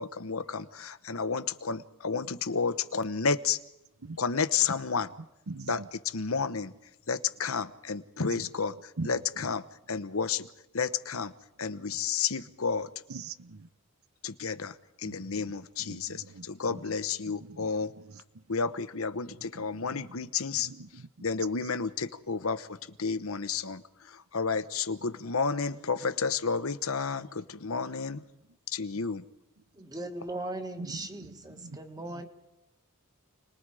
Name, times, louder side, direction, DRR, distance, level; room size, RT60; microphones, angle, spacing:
voice 1, 0.0-3.6 4.2-5.1 5.7-6.7 7.1-10.5 10.7-11.3 11.6-12.9 14.2-17.9 18.5-20.7 21.2-28.2 28.7-29.2, left 5 dB, 70° left, 1.0 m, -31 dB
voice 2, 5.2-5.9 8.3-9.5 11.6-11.7 13.1-13.7 15.0-15.5 15.8-18.2 18.6-18.7 19.3-20.2 20.5-21.1 21.6-21.7 25.8-25.9 30.7-32.3, right 3 dB, 75° right, 0.9 m, -44 dB
voice 3, 29.7-32.3, right 2 dB, 15° right, 1.8 m, -38 dB
30.0 x 21.0 x 4.9 m
head